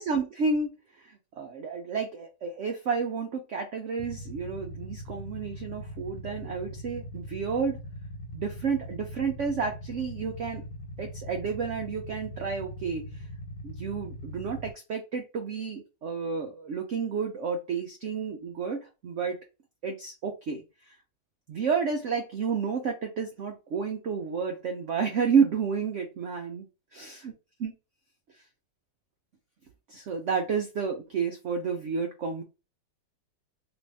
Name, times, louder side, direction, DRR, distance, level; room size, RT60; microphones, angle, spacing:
voice 1, 0.0-7.8 8.3-10.6 11.0-13.3 13.6-19.4 19.8-20.6 20.9-21.0 21.5-26.7 26.9-27.3 27.6-27.7 29.9-32.4, right 5 dB, 80° right, 3 dB, 0.6 m, -31 dB
Motorcycle / Idling, 4.0-14.7, left 1 dB, 75° left, 1.6 m, -41 dB
3.0 x 2.5 x 3.3 m, 0.28 s
omnidirectional pair, 2.0 m